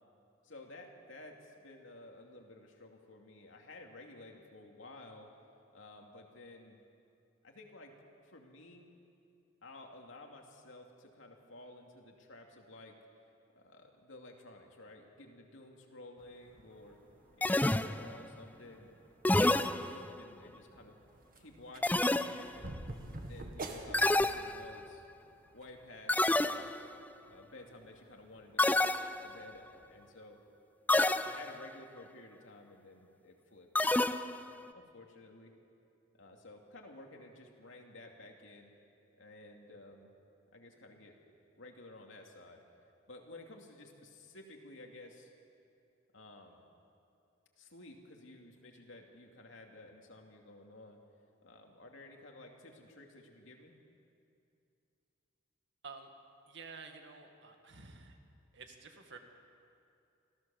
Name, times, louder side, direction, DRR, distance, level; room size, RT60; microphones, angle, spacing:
voice 1, 0.4-5.3 5.7-6.8 7.4-8.0 8.2-8.9 9.6-13.0 13.5-17.0 17.3-19.0 19.4-21.0 21.4-22.7 23.2-25.0 25.5-26.7 27.3-28.9 29.2-30.4 30.9-33.7 34.2-35.5 36.1-38.7 39.2-40.1 40.5-41.2 41.5-42.6 43.1-45.3 46.1-46.6 47.6-51.0 51.4-53.8, left 2 dB, 75° left, 2 dB, 2.7 m, -53 dB
sound 1, 16.2-30.1, right 1 dB, 45° right, 1.9 m, -51 dB
sound 2, 17.4-18.3 19.2-20.3 21.8-22.7 23.9-24.9 26.1-26.9 28.6-29.5 30.9-31.7 33.8-34.6, left 2 dB, 10° left, 0.4 m, -29 dB
voice 2, 56.5-58.2 58.5-59.2, right 4 dB, 60° right, 4 dB, 2.1 m, -50 dB
26.0 x 16.0 x 7.2 m, 2.6 s
head